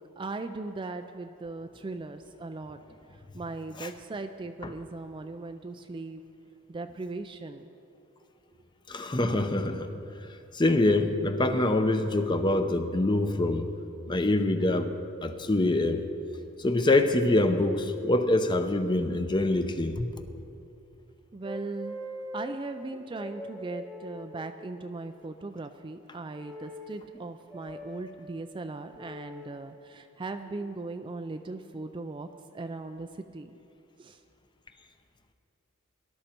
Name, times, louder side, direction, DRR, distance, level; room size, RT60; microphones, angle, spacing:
voice 1, 0.2-2.8 3.3-6.2 6.7-7.7 21.3-22.0 22.3-33.6 34.0-34.2, right 3 dB, 25° right, 8 dB, 0.3 m, -38 dB
voice 2, 8.9-9.9 10.5-13.7 14.1-14.9 15.2-16.0 16.6-20.1, left 2 dB, 20° left, 8 dB, 0.7 m, -25 dB
sound 1, 21.4-22.6 23.1-24.8 26.4-26.9 27.5-28.0 29.0-29.5 30.4-30.7, left 1 dB, 5° left, 1.1 m, -42 dB
18.5 x 12.0 x 4.4 m, 2.8 s
head